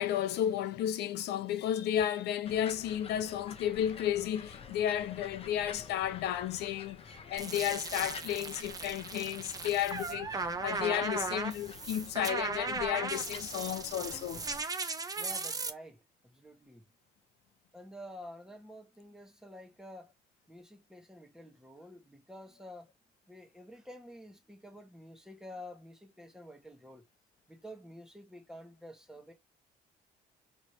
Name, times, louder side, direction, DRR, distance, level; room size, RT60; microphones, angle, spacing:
voice 1, 0.0-14.5, left 11 dB, 75° left, 0.7 m, -33 dB
sound 1, 2.4-14.6, left 5 dB, 35° left, 0.9 m, -49 dB
sound 2, 7.4-15.7, right 4 dB, 20° right, 0.7 m, -37 dB
voice 2, 15.2-16.8 17.7-20.1 20.5-22.9 23.3-27.1 27.5-29.3, equal, 5° right, 1.3 m, -49 dB
3.3 x 3.1 x 4.2 m
cardioid pair, 110°, 17 cm